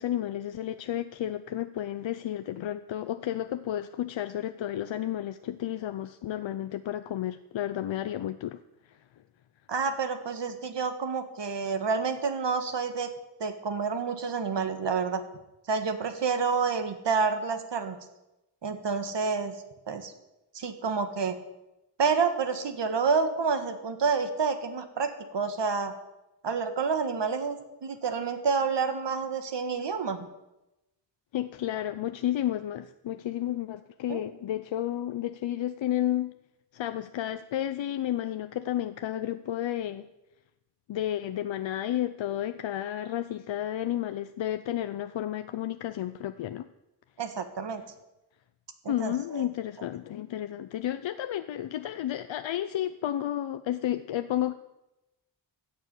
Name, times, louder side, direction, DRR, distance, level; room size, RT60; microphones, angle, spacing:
voice 1, 0.0-8.6 31.3-36.3 36.7-40.1 40.9-46.7 48.9-54.5, left 12 dB, 90° left, 10 dB, 0.6 m, -32 dB
voice 2, 9.7-13.1 13.4-15.2 15.7-18.0 18.6-19.5 19.9-20.1 20.5-21.4 22.0-25.9 26.4-30.3 34.1-34.2 47.2-47.8 48.8-49.5, right 5 dB, 70° right, 8 dB, 1.6 m, -29 dB
15.5 x 6.9 x 8.6 m, 0.95 s
wide cardioid pair, 100°, 44 cm